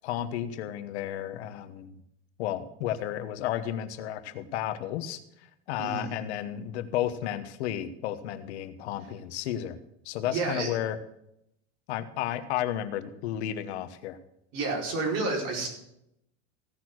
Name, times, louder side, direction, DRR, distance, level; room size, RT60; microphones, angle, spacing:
voice 1, 0.0-1.9 2.4-5.2 5.7-9.8 10.0-11.0 11.9-14.2, left 11 dB, 90° left, 10 dB, 1.2 m, -32 dB
voice 2, 5.8-6.2 10.3-10.7 14.5-15.7, right 3 dB, 50° right, -1 dB, 4.8 m, -30 dB
16.5 x 6.2 x 6.2 m, 0.78 s
supercardioid pair, 140°, 32 cm